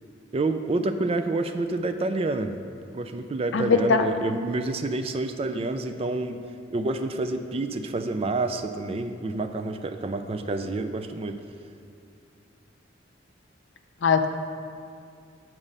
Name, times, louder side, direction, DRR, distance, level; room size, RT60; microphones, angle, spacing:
voice 1, 0.3-2.5 2.9-6.4 6.7-11.4, right 2 dB, 30° right, 8 dB, 0.3 m, -28 dB
voice 2, 3.5-4.0 14.0-14.3, left 5 dB, 65° left, 8 dB, 0.5 m, -20 dB
6.0 x 5.6 x 6.6 m, 2.4 s
head